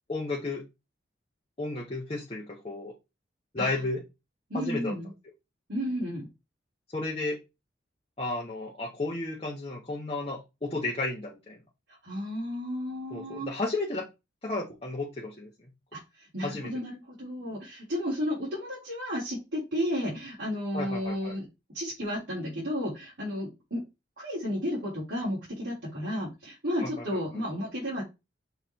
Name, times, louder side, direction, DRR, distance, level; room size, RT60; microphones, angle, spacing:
voice 1, 0.1-0.6 1.6-2.9 3.5-4.0 4.5-4.9 6.9-7.4 8.2-11.6 13.1-14.1 14.4-15.5 16.4-16.7 20.7-21.4 26.8-27.2, left 2 dB, 30° left, -3 dB, 1.1 m, -33 dB
voice 2, 4.5-5.1 5.7-6.3 12.0-13.5 15.9-21.5 21.7-23.8 24.2-28.0, equal, 80° right, -8 dB, 3.7 m, -33 dB
6.7 x 3.2 x 4.5 m, 0.25 s
head